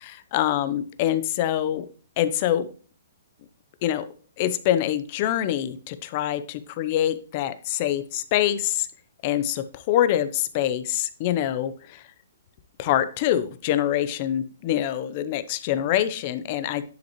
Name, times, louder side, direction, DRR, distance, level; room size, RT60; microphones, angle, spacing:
voice 1, 0.0-1.8 2.2-2.7 3.8-4.1 4.4-8.9 9.2-12.0 12.8-16.9, left 11 dB, 30° left, 12 dB, 0.6 m, -25 dB
10.5 x 5.4 x 3.0 m, 0.39 s
hypercardioid pair, 170°, 0 cm